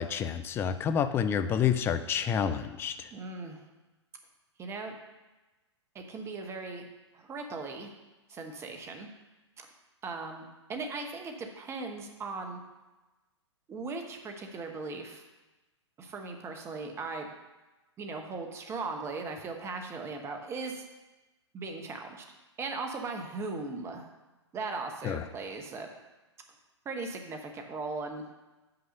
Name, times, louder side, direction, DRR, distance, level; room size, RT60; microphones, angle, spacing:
voice 1, 0.0-3.1 25.0-25.2, left 8 dB, 15° left, 11 dB, 0.3 m, -29 dB
voice 2, 3.1-3.6 4.6-5.0 5.9-6.8 7.1-7.9 8.3-9.1 10.0-12.6 13.7-15.2 16.0-17.3 18.0-20.8 21.5-22.2 22.6-24.1 24.5-25.9 26.8-28.2, right 3 dB, 15° right, 4 dB, 0.9 m, -38 dB
5.9 x 5.3 x 6.5 m, 1.1 s
figure-of-eight pair, 110°, 15 cm